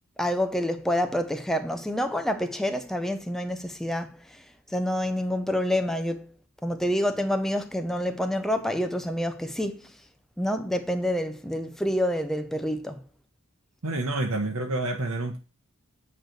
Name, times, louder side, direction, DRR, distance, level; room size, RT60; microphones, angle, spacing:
voice 1, 0.2-4.2 4.7-6.3 6.6-9.9 10.4-13.0, equal, ahead, 0.6 m, -27 dB
voice 2, 13.8-15.4, right 2 dB, 70° right, 0.9 m, -28 dB
9.1 x 3.2 x 6.5 m
head